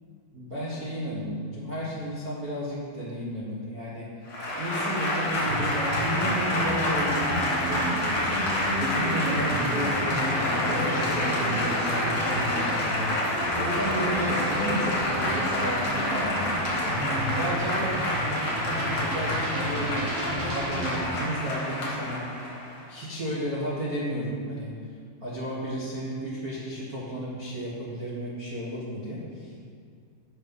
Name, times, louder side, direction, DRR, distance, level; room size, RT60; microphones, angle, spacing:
voice 1, 0.3-4.1 4.6-8.3 8.7-13.0 13.6-16.4 17.0-18.0 18.7-22.2 22.9-24.7 25.2-29.5, equal, 90° right, -8 dB, 0.8 m, -33 dB
Applause / Crowd, 4.3-22.8, left 1 dB, 40° left, 2.2 m, -28 dB
sound 1, 5.3-21.1, right 1 dB, 60° right, 1.7 m, -33 dB
7.5 x 7.0 x 5.5 m, 2.2 s
omnidirectional pair, 4.3 m